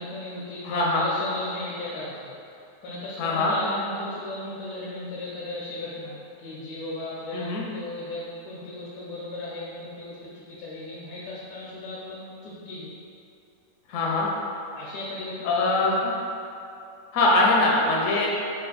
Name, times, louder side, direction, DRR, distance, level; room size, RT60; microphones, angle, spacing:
voice 1, 0.0-2.3 2.8-12.9 14.8-16.2, left 2 dB, 85° left, -7 dB, 1.2 m, -36 dB
voice 2, 0.6-1.0 3.2-3.5 7.3-7.6 13.9-14.3 15.4-16.0 17.1-18.3, left 2 dB, 70° left, -3 dB, 0.8 m, -22 dB
3.3 x 2.4 x 3.9 m, 2.6 s
omnidirectional pair, 1.8 m